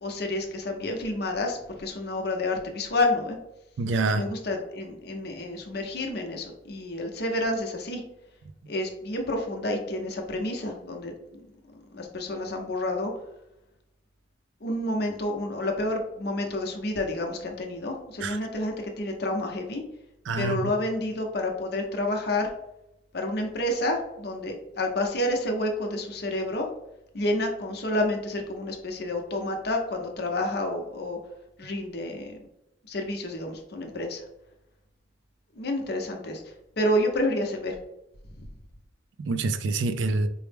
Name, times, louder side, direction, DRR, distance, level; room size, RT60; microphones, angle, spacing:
voice 1, 0.0-3.4 4.1-8.0 8.7-11.5 11.7-13.1 14.6-19.8 20.4-22.5 23.1-26.7 27.1-31.2 31.6-32.4 32.9-34.2 35.5-37.7 38.4-38.5, left 1 dB, 55° left, 2 dB, 0.7 m, -29 dB
voice 2, 3.8-4.2 18.2-18.4 20.3-20.6 39.2-40.3, right 3 dB, 80° right, 11 dB, 0.4 m, -26 dB
4.6 x 2.0 x 3.3 m, 0.85 s
head